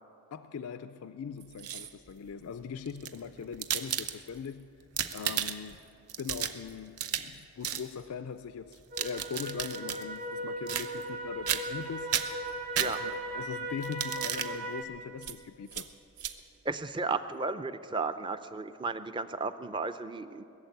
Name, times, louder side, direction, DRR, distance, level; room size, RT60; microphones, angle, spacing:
voice 1, 0.3-4.7 5.1-5.8 6.2-12.5 12.8-15.9, left 6 dB, 80° left, 11 dB, 0.4 m, -41 dB
sound 1, 1.4-2.1 2.9-4.5 4.8-5.8 6.1-7.4 7.6-7.9 8.7-10.0 10.7-11.2 11.5-11.8 12.1-13.3 13.8-14.5 15.2-15.4 15.7-15.9 16.2-16.3, right 9 dB, 90° right, 0.8 m, -34 dB
sound 2, 8.9-14.8, right 1 dB, 40° right, 1.7 m, -38 dB
voice 2, 16.7-20.4, right 4 dB, 20° right, 11 dB, 0.4 m, -34 dB
20.5 x 7.3 x 9.4 m, 2.7 s
head